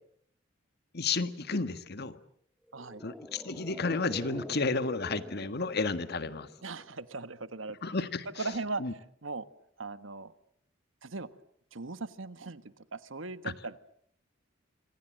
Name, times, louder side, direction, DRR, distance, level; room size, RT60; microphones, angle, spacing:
voice 1, 0.9-2.2 3.0-6.5 7.8-8.3 8.8-8.9 13.4-13.5, left 3 dB, 55° left, 12 dB, 1.6 m, -32 dB
sound 1, 2.7-7.3 7.5-7.6, equal, ahead, 1.1 m, -46 dB
voice 2, 2.7-3.0 6.6-7.8 8.4-9.4 9.8-10.3 11.0-11.3 11.7-13.8, right 3 dB, 80° right, 13 dB, 1.4 m, -39 dB
27.5 x 26.0 x 7.7 m, 0.66 s
head